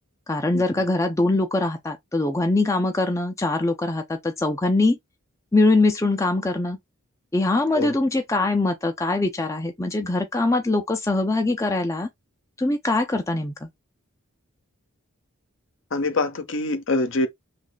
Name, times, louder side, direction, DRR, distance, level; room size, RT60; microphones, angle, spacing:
voice 1, 0.3-5.0 5.5-6.8 7.3-12.1 12.6-13.7, left 2 dB, 15° left, 0.4 m, -22 dB
voice 2, 15.9-17.3, left 2 dB, 55° left, 0.6 m, -24 dB
3.1 x 2.4 x 3.9 m
head